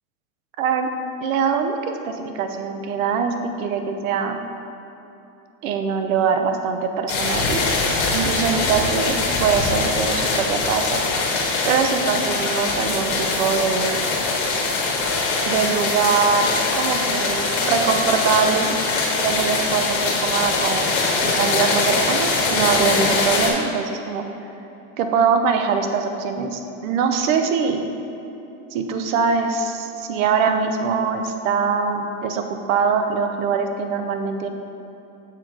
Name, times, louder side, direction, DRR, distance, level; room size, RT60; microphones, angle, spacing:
voice 1, 0.6-0.9 1.2-4.4 5.6-7.6 8.1-11.0 11.6-14.0 15.5-16.5 16.8-18.8 19.2-20.9 21.2-24.2 25.0-27.8 28.7-34.5, right 6 dB, 70° right, 6 dB, 0.7 m, -23 dB
sound 1, 7.1-23.5, left 3 dB, 40° left, 1.2 m, -22 dB
6.9 x 3.8 x 4.6 m, 2.9 s
supercardioid pair, 160°, 42 cm